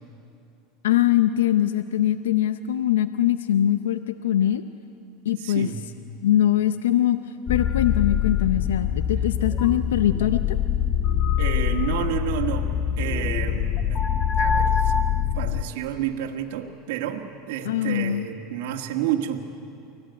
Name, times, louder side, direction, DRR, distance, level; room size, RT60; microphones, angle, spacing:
voice 1, 0.8-4.6 5.3-5.7 6.2-7.2 7.5-10.6 17.7-18.3, left 11 dB, 90° left, 11 dB, 0.6 m, -22 dB
voice 2, 5.4-5.8 11.4-14.0 14.4-14.9 15.3-19.4, right 10 dB, 70° right, 2 dB, 1.6 m, -30 dB
sound 1, 7.5-15.6, left 9 dB, 40° left, 1.4 m, -24 dB
23.5 x 16.0 x 9.3 m, 2.6 s
hypercardioid pair, 105°, 0 cm